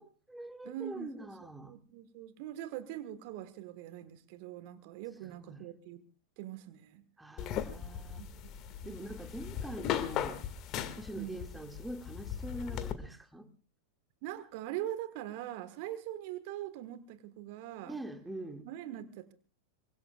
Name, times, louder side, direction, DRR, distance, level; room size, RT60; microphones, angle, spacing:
voice 1, 0.0-1.8 5.2-5.7 7.2-8.3 8.9-10.4 11.0-13.5 17.8-18.7, right 1 dB, 5° right, 2.1 m, -44 dB
voice 2, 0.6-6.0 6.4-7.0 8.2-8.3 8.8-9.1 11.2-11.4 14.2-18.0 18.6-19.3, right 12 dB, 45° right, 1.4 m, -42 dB
sound 1, 7.4-12.9, left 10 dB, 35° left, 2.0 m, -38 dB
25.0 x 24.0 x 2.4 m
figure-of-eight pair, 90°, 0 cm